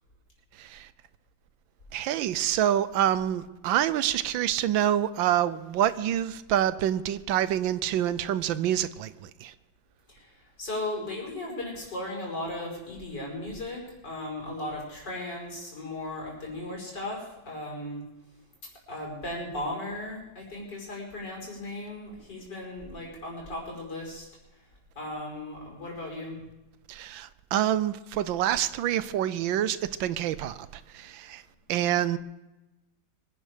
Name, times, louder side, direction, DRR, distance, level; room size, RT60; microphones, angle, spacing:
voice 1, 0.5-0.9 1.9-9.5 26.9-31.4 31.7-32.2, right 11 dB, 80° right, 15 dB, 1.4 m, -27 dB
voice 2, 10.6-18.0 18.9-24.3 25.0-26.4, left 1 dB, 60° left, -2 dB, 5.7 m, -36 dB
24.0 x 11.0 x 5.0 m, 1.0 s
omnidirectional pair, 2.1 m